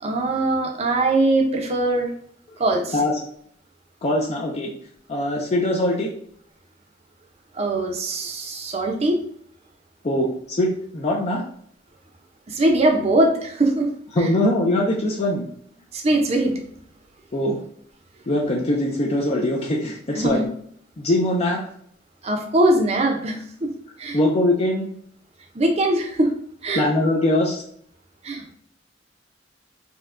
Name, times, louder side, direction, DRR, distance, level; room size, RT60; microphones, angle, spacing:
voice 1, 0.0-2.1 2.6-2.9 7.5-9.2 12.5-13.9 14.2-14.3 15.9-16.6 20.1-20.5 22.2-23.7 24.0-24.2 25.5-26.3 26.6-26.9 28.2-28.5, right 2 dB, 35° right, 3 dB, 0.5 m, -21 dB
voice 2, 4.0-4.7 5.1-6.1 10.0-11.4 14.1-15.5 17.3-17.5 18.3-20.5 21.0-21.6 24.1-24.9 26.7-27.6, left 1 dB, 35° left, -1 dB, 0.5 m, -22 dB
4.3 x 2.2 x 2.5 m, 0.64 s
head